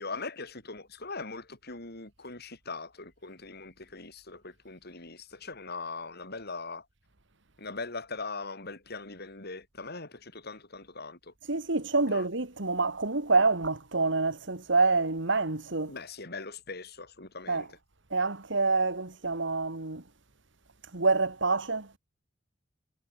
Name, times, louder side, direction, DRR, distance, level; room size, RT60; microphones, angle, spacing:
voice 1, 0.0-6.9 7.6-11.3 12.1-12.2 15.9-17.7, left 3 dB, 55° left, 7.2 m, -41 dB
voice 2, 11.5-15.9 17.5-17.7 18.1-20.0 20.9-22.0, right 3 dB, 65° right, 2.3 m, -27 dB
head